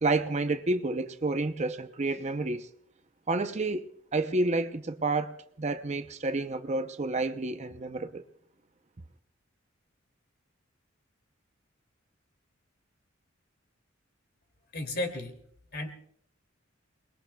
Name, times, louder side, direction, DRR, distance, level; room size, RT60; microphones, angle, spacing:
voice 1, 0.0-2.7 3.3-3.9 4.1-8.2, right 2 dB, 35° right, 0.7 m, -29 dB
voice 2, 14.7-15.4 15.7-16.0, left 1 dB, 55° left, 2.6 m, -33 dB
29.5 x 21.0 x 2.3 m
head